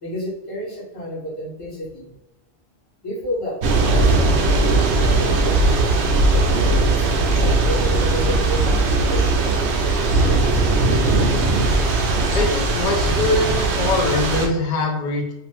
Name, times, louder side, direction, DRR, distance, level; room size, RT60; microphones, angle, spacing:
voice 1, 0.0-2.1 3.0-10.7, equal, 30° left, -5 dB, 0.9 m, -32 dB
Thunder / Rain, 3.6-14.5, right 2 dB, 75° right, 0.8 m, -18 dB
voice 2, 12.3-15.3, left 2 dB, 65° left, 0 dB, 0.3 m, -22 dB
2.6 x 2.5 x 3.2 m, 0.99 s
omnidirectional pair, 1.2 m